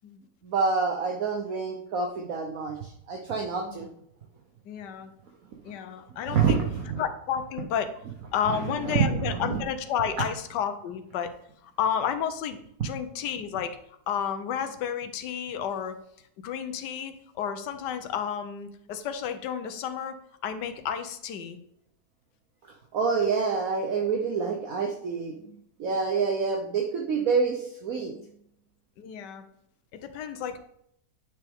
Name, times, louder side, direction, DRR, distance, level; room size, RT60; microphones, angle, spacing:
voice 1, 0.4-3.9 6.3-7.0 8.5-9.6 22.9-25.4 25.8-28.1, right 5 dB, 60° right, 1 dB, 1.2 m, -27 dB
voice 2, 4.6-5.1 5.6-6.6 7.0-7.9 8.3-11.3 11.6-13.8 14.1-15.9 16.4-20.2 20.4-21.6 26.2-26.3 29.0-29.5 29.9-30.6, left 8 dB, 80° left, 9 dB, 1.4 m, -31 dB
9.2 x 6.7 x 3.6 m, 0.73 s
omnidirectional pair, 1.8 m